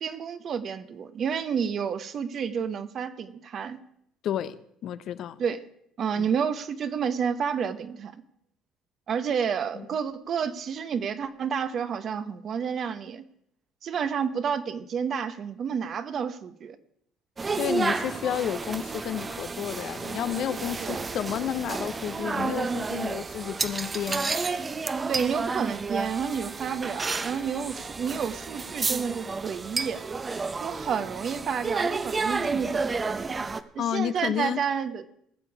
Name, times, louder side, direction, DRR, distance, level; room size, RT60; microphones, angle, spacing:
voice 1, 0.0-3.8 5.4-5.6 6.0-8.1 9.1-13.2 13.8-16.8 20.8-21.0 25.1-30.0 30.6-33.3 33.7-35.1, right 7 dB, 50° right, 11 dB, 1.0 m, -30 dB
voice 2, 4.2-5.4 6.2-6.3 9.7-9.8 17.6-24.3 33.8-34.6, left 10 dB, 60° left, 13 dB, 0.7 m, -31 dB
sound 1, 17.4-33.6, right 4 dB, 30° right, 0.7 m, -31 dB
20.0 x 7.1 x 4.8 m, 0.72 s
supercardioid pair, 80°, 0 cm